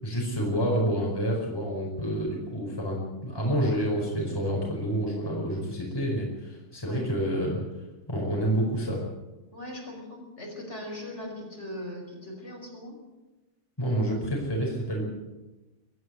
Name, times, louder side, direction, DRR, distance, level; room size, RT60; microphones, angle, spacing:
voice 1, 0.0-7.6 8.1-9.0 13.8-15.0, equal, 10° left, -2 dB, 5.1 m, -28 dB
voice 2, 9.5-13.0, left 1 dB, 30° left, 0 dB, 5.7 m, -40 dB
23.5 x 14.5 x 8.0 m, 1.1 s
omnidirectional pair, 2.3 m